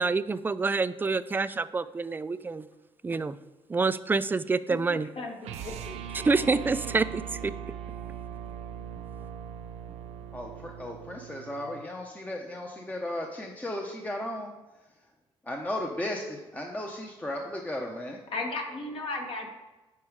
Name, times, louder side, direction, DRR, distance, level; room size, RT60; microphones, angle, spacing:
voice 1, 0.0-2.6 3.0-3.4 3.7-5.1 6.2-7.5, right 4 dB, 20° right, 15 dB, 0.3 m, -27 dB
voice 2, 4.7-5.3 5.6-5.9 6.3-6.7 18.3-19.5, left 3 dB, 55° left, 2 dB, 1.6 m, -36 dB
sound 1, 5.4-11.8, right 9 dB, 90° right, 0.6 m, -40 dB
voice 3, 10.3-14.5 15.4-18.2, left 1 dB, 15° left, 1 dB, 0.8 m, -35 dB
8.4 x 4.7 x 4.8 m, 1.1 s
cardioid pair, 90°, 11 cm